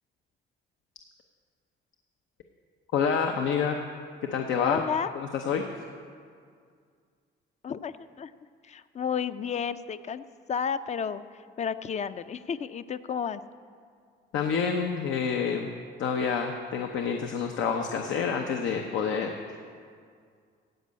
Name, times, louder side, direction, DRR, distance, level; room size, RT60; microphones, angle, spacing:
voice 1, 2.9-3.8 4.3-4.8 5.1-5.7 14.3-15.7 16.0-19.6, left 6 dB, 80° left, 3 dB, 0.8 m, -28 dB
voice 2, 4.6-5.1 7.6-8.3 8.6-13.4, left 7 dB, 35° left, 13 dB, 0.5 m, -32 dB
16.0 x 5.4 x 8.5 m, 2.1 s
cardioid pair, 90°, 20 cm